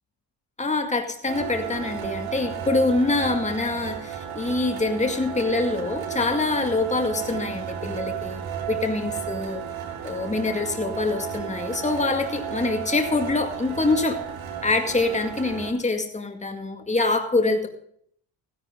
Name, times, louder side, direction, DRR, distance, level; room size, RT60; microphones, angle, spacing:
voice 1, 0.6-8.4 8.7-9.6 10.0-14.2 14.6-17.7, left 3 dB, 15° left, 5 dB, 2.1 m, -25 dB
sound 1, 1.3-15.7, right 9 dB, 75° right, 3.5 m, -33 dB
16.0 x 11.0 x 3.8 m, 0.62 s
cardioid pair, 90°, 48 cm